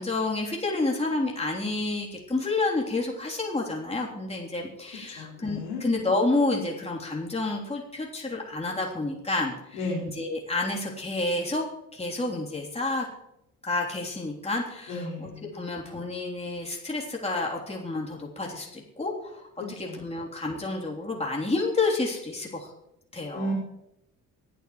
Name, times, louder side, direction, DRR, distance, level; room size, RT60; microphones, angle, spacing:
voice 1, 0.0-9.8 10.2-11.7 11.9-13.1 13.6-22.7 23.1-23.5, left 2 dB, 15° left, -2 dB, 3.2 m, -29 dB
voice 2, 5.2-5.8 9.7-10.0 14.9-15.5 19.8-20.2 23.3-23.5, left 1 dB, 75° left, -5 dB, 4.6 m, -33 dB
24.5 x 9.0 x 3.1 m, 0.85 s
hypercardioid pair, 50°, 44 cm